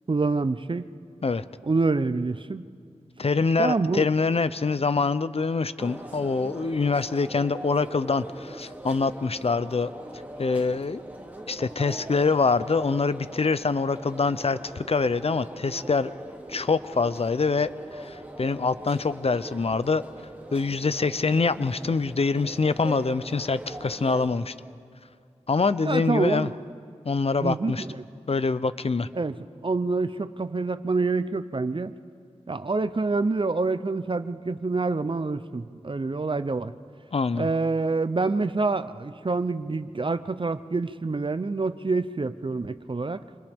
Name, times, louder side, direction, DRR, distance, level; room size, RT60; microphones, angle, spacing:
voice 1, 0.1-0.9 1.6-2.7 3.6-4.0 25.8-26.5 27.4-28.0 29.1-29.4 29.6-31.9 32.5-36.7 37.3-43.2, right 3 dB, 45° right, 13 dB, 0.7 m, -26 dB
voice 2, 3.2-9.9 10.4-11.0 11.5-16.1 16.5-17.7 18.0-20.0 20.5-24.5 25.5-26.5 27.1-27.8 28.3-29.1 37.1-37.5, left 4 dB, 55° left, 14 dB, 0.6 m, -25 dB
sound 1, 5.8-24.3, right 1 dB, 15° right, 2.7 m, -41 dB
27.5 x 26.5 x 3.6 m, 2.3 s
wide cardioid pair, 50°, 12 cm